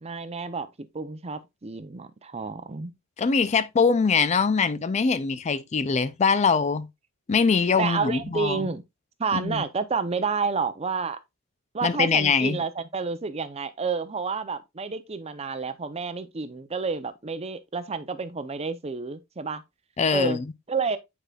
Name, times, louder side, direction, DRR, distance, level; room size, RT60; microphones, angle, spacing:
voice 1, 0.0-0.7 0.9-2.9 7.8-8.8 9.2-11.2 11.7-19.6 20.1-20.4 20.7-21.0, right 5 dB, 30° right, 0.6 m, -29 dB
voice 2, 3.2-6.9 7.3-8.7 9.3-9.6 11.8-12.6 20.0-20.4, left 5 dB, 35° left, 0.4 m, -23 dB
9.0 x 4.8 x 2.4 m
head